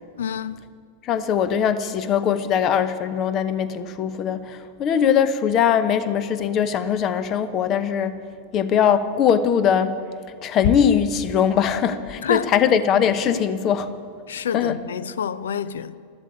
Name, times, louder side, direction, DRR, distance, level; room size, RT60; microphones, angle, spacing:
voice 1, 0.2-0.6 12.2-12.5 14.3-16.0, left 7 dB, 65° left, 0.5 m, -27 dB
voice 2, 1.1-8.1 8.5-9.9 10.4-13.9 14.5-14.8, left 8 dB, 35° left, 0.9 m, -21 dB
12.5 x 12.0 x 8.5 m
figure-of-eight pair, 90°, 0 cm